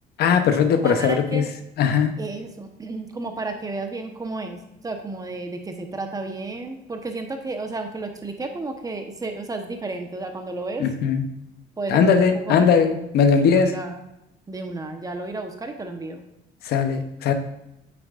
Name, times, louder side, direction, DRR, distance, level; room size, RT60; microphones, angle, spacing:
voice 1, 0.2-1.4 1.8-2.1 10.8-11.2 11.9-13.7 16.6-17.3, left 6 dB, 70° left, 8 dB, 0.8 m, -19 dB
voice 2, 0.8-1.5 2.2-10.9 11.8-14.0 14.5-16.2, right 3 dB, 20° right, 5 dB, 1.0 m, -32 dB
8.4 x 7.0 x 2.5 m, 0.86 s
cardioid pair, 110°, 17 cm